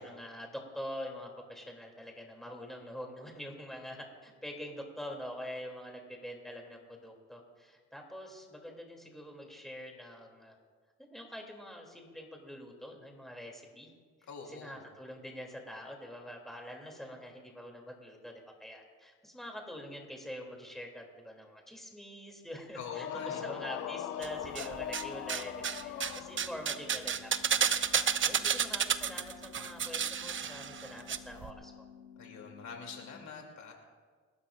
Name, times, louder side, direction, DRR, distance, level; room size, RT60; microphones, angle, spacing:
voice 1, 0.0-10.6 11.0-13.9 14.5-18.3 18.6-27.3 27.6-31.7, equal, ahead, 0 dB, 2.9 m, -45 dB
voice 2, 14.3-14.8 22.7-23.5 32.2-33.7, left 5 dB, 65° left, 1 dB, 3.0 m, -45 dB
sound 1, 22.8-26.8, left 11 dB, 90° left, 0.7 m, -40 dB
sound 2, 23.1-33.1, left 8 dB, 35° left, 5.3 m, -53 dB
sound 3, 24.2-25.0 25.3-31.2 31.4-31.5, right 7 dB, 40° right, 0.7 m, -31 dB
29.5 x 12.5 x 2.6 m, 1.6 s
cardioid pair, 90°, 30 cm